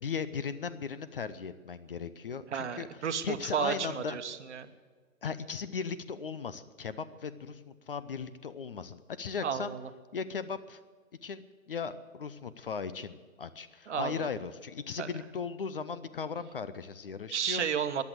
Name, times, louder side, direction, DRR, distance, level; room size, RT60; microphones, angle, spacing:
voice 1, 0.0-4.2 5.2-9.7 10.1-10.8 11.2-17.6, left 6 dB, 40° left, 14 dB, 0.6 m, -37 dB
voice 2, 2.5-4.7 9.4-9.8 13.9-14.3 15.0-15.1 17.3-18.0, right 7 dB, 55° right, 10 dB, 1.2 m, -32 dB
14.0 x 11.0 x 8.0 m, 1.5 s
hypercardioid pair, 155°, 42 cm